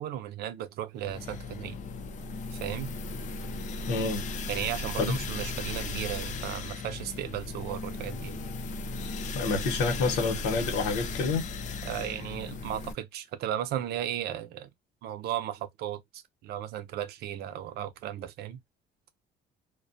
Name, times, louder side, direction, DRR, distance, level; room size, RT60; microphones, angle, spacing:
voice 1, 0.0-1.8 2.6-2.9 4.5-8.4 11.8-14.7 15.0-18.6, right 11 dB, 70° right, 0.5 m, -35 dB
sound 1, 1.0-12.9, left 3 dB, 45° left, 0.5 m, -36 dB
voice 2, 3.9-4.2 5.0-5.2 9.3-11.5, left 3 dB, 85° left, 1.0 m, -28 dB
2.2 x 2.2 x 2.6 m
cardioid pair, 110°, 17 cm